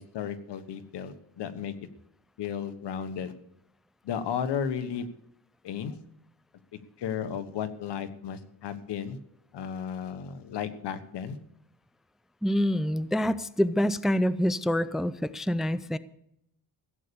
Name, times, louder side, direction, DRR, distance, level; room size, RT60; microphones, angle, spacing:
voice 1, 0.0-1.7 2.4-3.3 4.0-5.1 5.6-5.9 7.0-9.2 9.5-11.4, left 8 dB, 80° left, 10 dB, 1.4 m, -34 dB
voice 2, 12.4-16.0, equal, ahead, 15 dB, 0.5 m, -26 dB
16.0 x 8.3 x 6.9 m, 0.76 s
cardioid pair, 100°, 41 cm